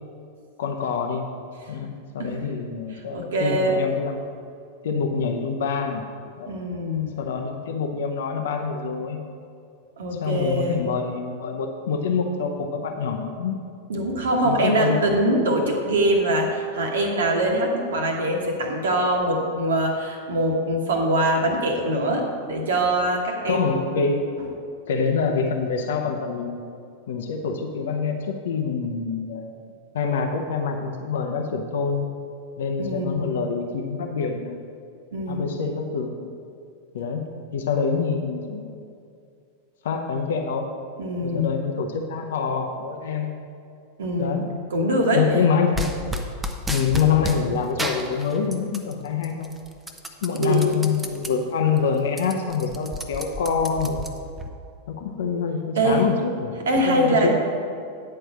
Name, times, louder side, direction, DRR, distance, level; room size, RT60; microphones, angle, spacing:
voice 1, 0.6-1.2 1.7-4.3 4.8-6.0 6.4-6.5 7.2-9.2 10.2-13.6 14.4-15.3 23.4-24.2 24.9-26.6 27.1-29.5 29.9-32.1 32.6-34.6 35.3-36.3 36.9-37.2 37.5-38.8 39.8-40.7 41.2-43.3 44.2-44.5 45.1-45.9 46.7-49.5 50.2-54.0 54.9-56.5 56.8-57.3, left 5 dB, 60° left, 4 dB, 0.6 m, -26 dB
voice 2, 3.1-3.8 6.5-7.2 10.0-10.8 13.9-23.7 32.8-33.4 35.1-35.7 41.0-41.5 44.0-44.4 44.7-45.2 50.3-50.9 55.7-56.0 56.6-57.3, right 1 dB, 65° right, 1 dB, 1.2 m, -23 dB
sound 1, 45.7-47.4 47.8-48.9 49.2-51.3 51.7-51.8 52.1-54.5, equal, 10° right, 0.7 m, -31 dB
9.5 x 4.4 x 6.3 m, 2.3 s
figure-of-eight pair, 90°, 0 cm